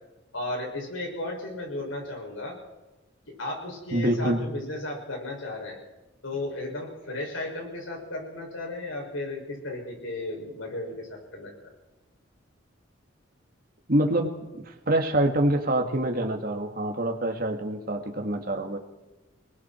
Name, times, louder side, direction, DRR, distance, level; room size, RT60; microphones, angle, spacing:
voice 1, 0.3-2.6 3.4-5.8 6.2-11.7, left 2 dB, 85° left, 0 dB, 6.5 m, -34 dB
voice 2, 3.9-4.4 13.9-18.8, right 1 dB, 45° right, 2 dB, 1.9 m, -26 dB
29.0 x 19.5 x 4.5 m, 1.1 s
head